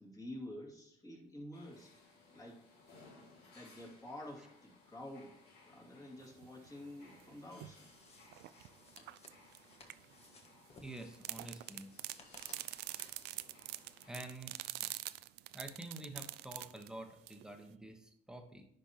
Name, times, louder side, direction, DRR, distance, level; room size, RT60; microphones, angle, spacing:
voice 1, 0.0-1.9 2.3-2.6 3.5-5.3 5.6-7.9, left 1 dB, 20° left, -2 dB, 2.3 m, -49 dB
sound 1, 1.5-14.2, left 3 dB, 70° left, 2.4 m, -63 dB
sound 2, 6.2-7.8 8.2-10.4 11.1-17.7, right 16 dB, 80° right, 0.4 m, -45 dB
sound 3, 7.6-13.4, left 3 dB, 40° left, 1.5 m, -62 dB
voice 2, 10.8-11.9 14.1-14.5 14.8-15.1 15.5-18.7, right 1 dB, 5° right, 4 dB, 1.2 m, -48 dB
10.0 x 5.3 x 2.9 m, 0.77 s
cardioid pair, 110°, 17 cm